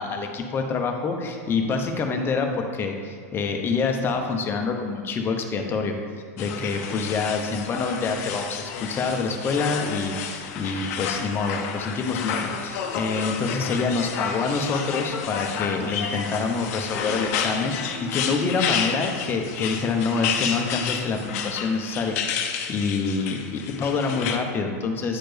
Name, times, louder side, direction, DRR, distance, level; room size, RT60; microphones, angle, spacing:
voice 1, 0.0-6.0 6.4-25.2, left 4 dB, 25° left, 3 dB, 0.8 m, -26 dB
sound 1, 6.4-24.4, left 7 dB, 65° left, 0.6 m, -31 dB
9.1 x 4.3 x 3.4 m, 2.2 s
supercardioid pair, 130°, 9 cm